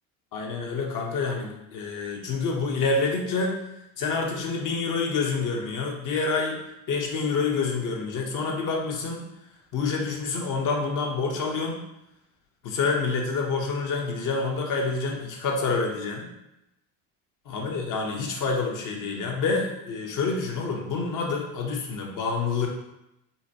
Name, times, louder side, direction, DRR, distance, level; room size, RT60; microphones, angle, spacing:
voice 1, 0.3-3.6 4.0-6.6 6.9-9.3 9.7-11.8 12.6-16.3 17.5-22.7, left 4 dB, 45° left, 0 dB, 0.9 m, -27 dB
3.9 x 2.2 x 2.8 m, 0.89 s
hypercardioid pair, 70°, 45 cm